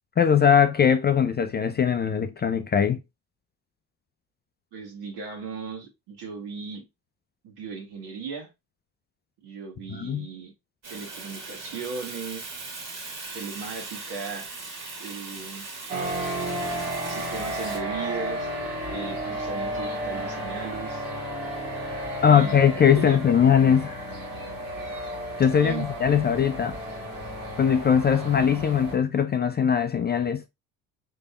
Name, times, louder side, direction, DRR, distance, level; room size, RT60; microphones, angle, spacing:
voice 1, 0.2-3.0 9.9-10.3 22.2-24.1 25.4-26.8 27.6-30.4, left 8 dB, 25° left, 0.4 m, -21 dB
voice 2, 4.7-6.8 7.4-8.5 9.4-10.5 10.9-12.5 13.3-14.5 15.0-15.7 17.1-18.5 18.9-21.0 22.3-22.6 23.0-23.2 25.6-26.2, right 5 dB, 60° right, 1.8 m, -37 dB
Fire, 10.8-17.8, right 3 dB, 45° right, 1.9 m, -39 dB
sound 1, 15.9-28.9, right 1 dB, 85° right, 2.6 m, -33 dB
5.4 x 3.4 x 2.2 m
hypercardioid pair, 55°, 43 cm